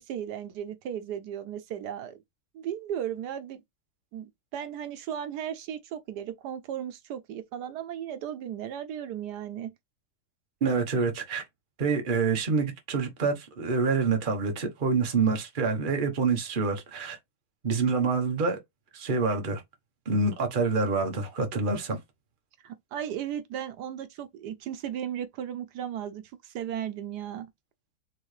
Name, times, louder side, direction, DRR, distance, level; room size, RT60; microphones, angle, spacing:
voice 1, 0.0-2.2 2.5-3.6 4.1-9.7 22.6-27.5, right 9 dB, 80° right, 1.2 m, -36 dB
voice 2, 10.6-11.4 11.8-17.2 17.6-18.6 18.9-19.6 20.1-22.0, right 4 dB, 35° right, 1.1 m, -26 dB
4.6 x 3.4 x 3.2 m
omnidirectional pair, 1.8 m